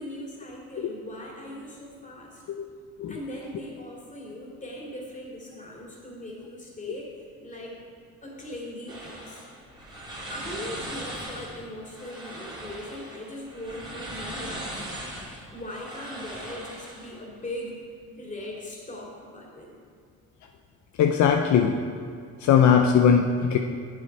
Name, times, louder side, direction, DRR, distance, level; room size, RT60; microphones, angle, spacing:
voice 1, 0.0-2.4 3.1-7.8 8.2-9.4 10.3-14.7 15.5-17.8 18.2-19.8, left 1 dB, 25° left, -2 dB, 2.6 m, -39 dB
sound 1, 8.9-17.2, right 1 dB, 15° right, 2.5 m, -39 dB
voice 2, 21.0-21.8 22.4-23.6, left 7 dB, 70° left, 4 dB, 0.6 m, -20 dB
9.2 x 7.8 x 4.5 m, 2.3 s
cardioid pair, 90°, 30 cm